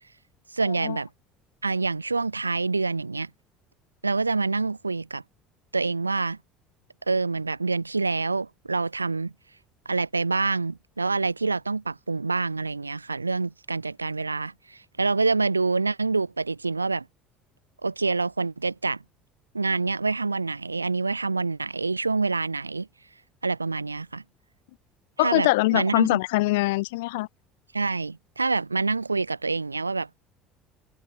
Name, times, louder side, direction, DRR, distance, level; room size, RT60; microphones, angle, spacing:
voice 1, 0.5-1.1 1.6-3.3 4.0-5.2 5.7-6.4 7.1-9.3 9.8-17.1 17.8-19.0 19.5-22.9 23.4-24.2 25.2-26.2 27.7-30.1, right 3 dB, 85° right, 6.6 m, -26 dB
voice 2, 25.2-27.3, left 21 dB, 65° left, 7.3 m, -23 dB
figure-of-eight pair, 60°, 0 cm